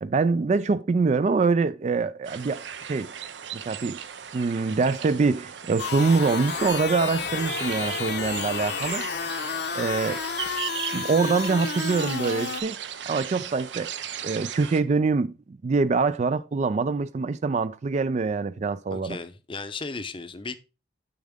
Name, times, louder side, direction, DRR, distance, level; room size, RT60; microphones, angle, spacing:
voice 1, 0.0-3.1 3.5-4.0 4.3-9.0 9.7-10.2 10.9-12.8 13.1-13.9 14.2-19.2, right 4 dB, 40° right, 0.3 m, -24 dB
sound 1, 2.2-14.8, right 9 dB, 80° right, 0.6 m, -37 dB
sound 2, 5.8-12.6, left 6 dB, 65° left, 0.9 m, -31 dB
voice 2, 18.9-20.6, left 3 dB, 30° left, 0.7 m, -35 dB
7.1 x 6.3 x 3.5 m
head